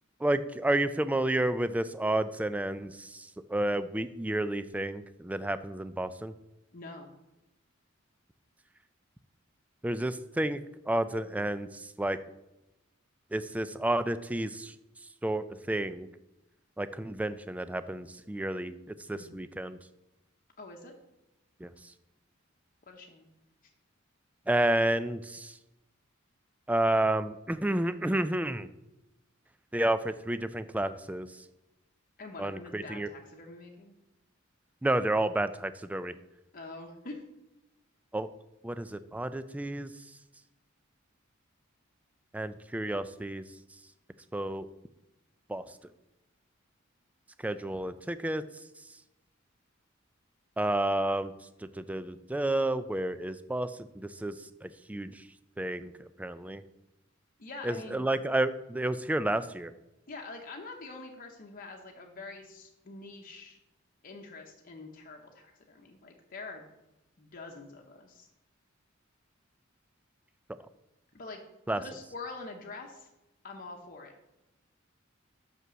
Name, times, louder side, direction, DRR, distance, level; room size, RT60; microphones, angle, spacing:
voice 1, 0.2-6.3 9.8-11.7 12.0-12.2 13.3-14.7 15.2-16.1 16.8-18.8 19.1-19.8 21.6-21.7 24.5-25.5 26.7-28.7 29.7-31.3 32.4-33.1 34.8-36.1 38.1-38.3 38.6-39.9 42.3-43.4 44.3-44.7 45.5-45.6 47.4-48.4 50.6-51.3 51.8-53.7 54.2-54.3 54.6-55.1 55.6-55.9 56.2-56.6 57.6-59.7 71.7-71.8, right 1 dB, 5° right, 13 dB, 0.3 m, -30 dB
voice 2, 6.7-7.1 19.1-19.4 20.6-20.9 22.9-23.3 32.2-33.9 36.5-37.2 57.4-58.1 60.1-63.6 64.0-66.7 67.2-68.3 71.1-71.4 71.7-73.1 73.4-74.1, left 3 dB, 45° left, 1 dB, 0.9 m, -45 dB
6.0 x 5.5 x 6.2 m, 0.94 s
head